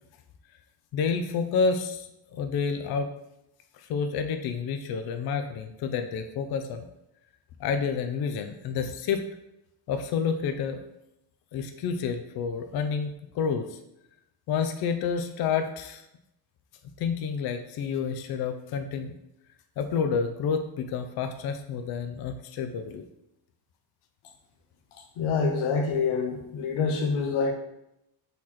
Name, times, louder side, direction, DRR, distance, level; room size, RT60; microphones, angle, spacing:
voice 1, 0.9-3.1 3.8-6.8 7.6-9.2 9.9-10.8 11.5-13.8 14.5-16.0 17.0-19.1 19.8-23.0, left 6 dB, 50° left, 7 dB, 0.5 m, -29 dB
voice 2, 25.2-27.5, left 4 dB, 85° left, 4 dB, 0.9 m, -26 dB
4.1 x 3.1 x 4.2 m, 0.84 s
cardioid pair, 120°, 48 cm